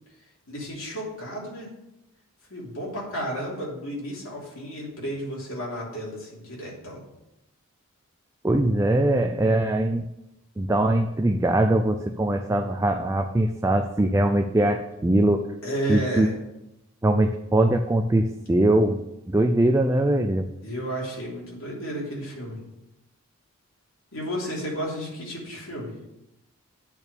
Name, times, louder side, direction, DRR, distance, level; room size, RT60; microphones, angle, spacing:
voice 1, 0.5-1.7 2.5-7.0 15.6-16.3 20.6-22.6 24.1-25.9, equal, 65° left, -4 dB, 3.1 m, -32 dB
voice 2, 8.4-10.1 10.6-15.5 15.9-16.3 17.0-20.5, right 1 dB, 15° right, 5 dB, 0.3 m, -22 dB
8.9 x 4.3 x 6.8 m, 0.90 s
head